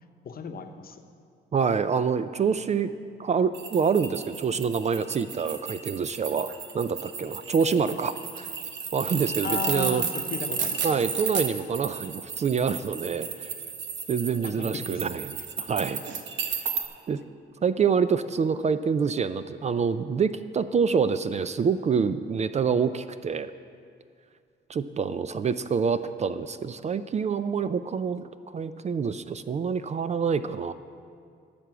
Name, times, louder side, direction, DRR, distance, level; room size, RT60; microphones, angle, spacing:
voice 1, 0.2-1.0 7.8-8.0 9.4-10.9 14.4-15.1 15.4-15.5, left 6 dB, 50° left, 6 dB, 0.9 m, -35 dB
voice 2, 1.5-2.9 3.2-8.5 8.9-10.0 10.8-13.5 14.1-16.0 16.4-16.7 17.1-17.2 17.6-23.5 24.7-30.7, right 6 dB, 35° right, 12 dB, 0.4 m, -26 dB
sound 1, 3.5-16.8, right 6 dB, 70° right, 1.0 m, -33 dB
12.5 x 6.9 x 6.0 m, 2.3 s
cardioid pair, 90°, 20 cm